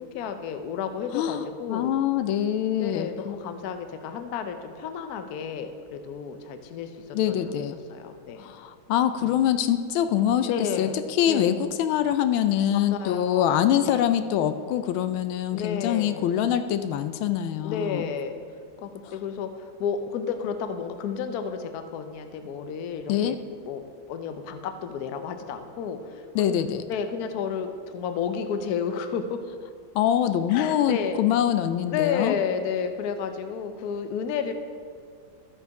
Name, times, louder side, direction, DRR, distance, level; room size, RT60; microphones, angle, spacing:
voice 1, 0.0-1.9 2.8-6.9 7.3-7.5 7.9-8.5 9.2-9.3 10.5-11.5 12.7-14.1 15.5-16.3 17.6-18.3 18.8-23.4 23.6-26.6 26.9-29.4 30.5-31.2 31.9-34.5, left 7 dB, 65° left, 8 dB, 1.0 m, -31 dB
voice 2, 1.1-3.1 7.1-7.8 8.4-18.0 19.1-19.2 23.1-23.4 26.3-26.8 29.9-32.4, left 10 dB, 85° left, 10 dB, 1.4 m, -24 dB
13.0 x 5.8 x 4.7 m, 2.1 s
omnidirectional pair, 2.2 m